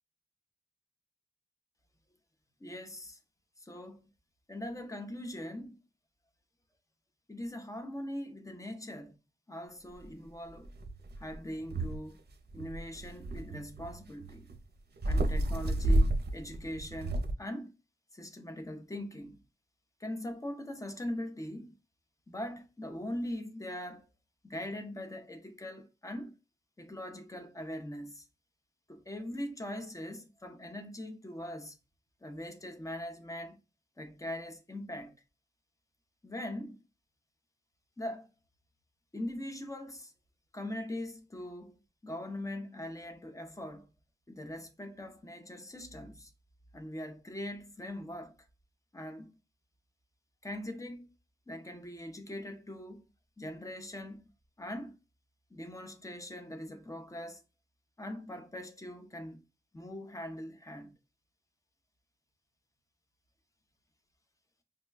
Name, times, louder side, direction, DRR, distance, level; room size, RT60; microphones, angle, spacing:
voice 1, 2.6-3.2 3.6-4.1 4.5-5.8 7.3-9.2 9.5-10.7 11.2-12.2 12.5-14.5 15.0-17.7 18.1-19.4 20.0-21.8 22.3-24.1 24.4-26.4 26.8-28.3 28.9-31.8 32.2-33.6 34.0-35.1 36.2-36.8 38.0-38.3 39.1-40.1 40.5-43.9 44.3-46.3 46.7-48.3 48.9-49.3 50.4-51.1 51.5-53.0 53.4-54.3 54.6-55.0 55.5-57.4 58.0-59.4 59.7-60.9, left 1 dB, 15° left, 0.7 m, -41 dB
sound 1, 10.0-10.1 10.6-12.0 12.3-14.6 15.0-17.3, right 1 dB, 60° right, 0.6 m, -31 dB
5.4 x 2.2 x 2.3 m
wide cardioid pair, 90°, 19 cm